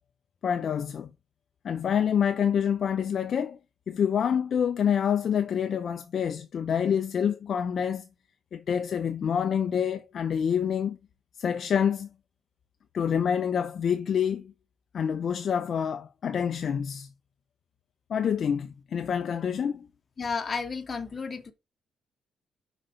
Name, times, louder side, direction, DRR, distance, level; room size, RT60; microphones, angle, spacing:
voice 1, 0.4-1.1 1.6-3.6 3.9-8.0 8.5-11.0 11.4-12.1 12.9-14.5 14.9-17.1 18.1-19.9, left 8 dB, 50° left, 0.5 m, -27 dB
voice 2, 20.2-21.5, left 5 dB, 30° left, 1.2 m, -32 dB
5.7 x 4.0 x 5.0 m
cardioid pair, 125°, 0 cm